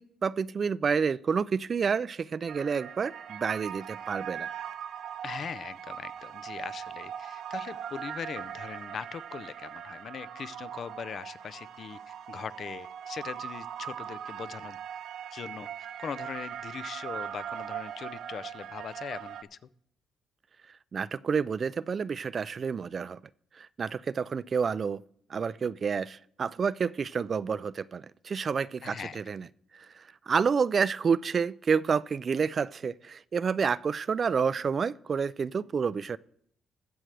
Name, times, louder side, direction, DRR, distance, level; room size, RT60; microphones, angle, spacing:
voice 1, 0.0-4.5 20.9-23.2 23.5-25.0 25.3-29.5 29.7-36.2, right 6 dB, 45° right, 20 dB, 0.3 m, -29 dB
sound 1, 2.5-19.4, right 9 dB, 75° right, 0.8 m, -40 dB
voice 2, 5.2-14.8 15.3-15.7 16.0-19.6 28.8-29.2, left 7 dB, 55° left, 16 dB, 0.5 m, -40 dB
21.0 x 7.6 x 3.3 m, 0.67 s
cardioid pair, 90°, 0 cm